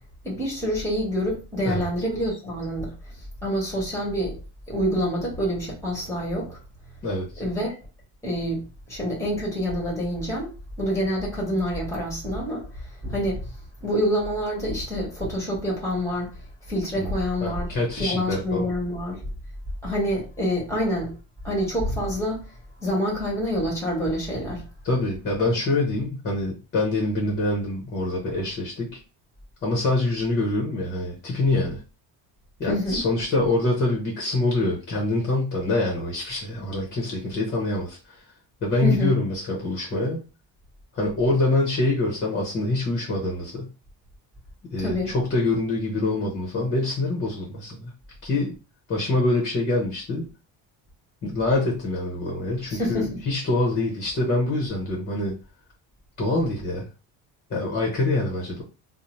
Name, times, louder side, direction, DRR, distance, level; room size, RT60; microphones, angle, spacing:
voice 1, 0.2-3.1 3.4-4.4 4.7-6.6 7.4-7.7 8.2-8.6 8.9-10.5 10.8-13.5 13.8-16.3 16.7-17.7 18.0-19.2 19.8-21.1 21.4-22.4 22.8-24.6 32.7-33.0 38.8-39.1 44.8-45.1 52.7-53.2, equal, 5° left, 1.1 m, -27 dB
voice 2, 17.4-18.6 24.8-29.0 29.6-31.8 32.6-38.2 38.6-40.2 40.9-43.7 44.7-47.9 48.2-48.5 48.9-50.3 51.2-55.4 56.2-56.8 57.5-58.6, left 2 dB, 30° left, 0.7 m, -25 dB
2.6 x 2.0 x 3.0 m
cardioid pair, 160°, 39 cm